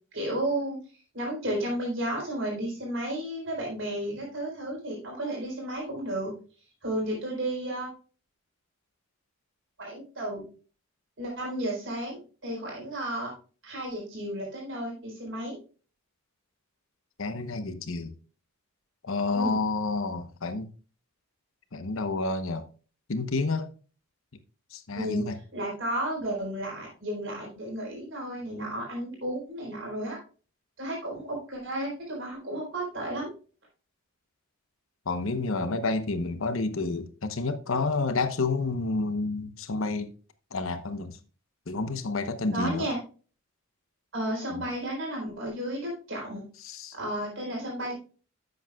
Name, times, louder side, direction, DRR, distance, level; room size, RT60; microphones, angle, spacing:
voice 1, 0.1-0.8 1.1-6.3 6.8-7.9 9.8-10.4 11.2-13.3 13.6-15.6 19.3-19.6 25.0-30.2 30.8-33.3 42.5-43.0 44.1-46.4 46.9-47.9, right 1 dB, 60° right, 4.3 m, -33 dB
voice 2, 17.2-18.1 19.0-20.7 21.7-22.7 23.1-23.7 24.7-25.4 35.1-40.1 40.5-41.2 41.7-42.9 44.5-44.6 46.6-47.0, left 3 dB, 70° left, 0.9 m, -29 dB
11.5 x 7.9 x 2.3 m
head